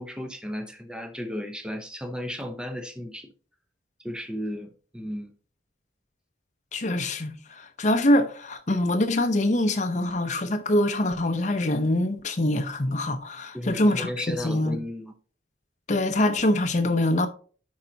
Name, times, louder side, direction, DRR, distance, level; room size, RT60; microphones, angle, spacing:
voice 1, 0.0-3.3 4.0-5.3 13.5-15.1, equal, 5° right, 0.8 m, -34 dB
voice 2, 6.7-14.8 15.9-17.3, left 1 dB, 40° left, 0.8 m, -24 dB
10.5 x 5.2 x 2.8 m
head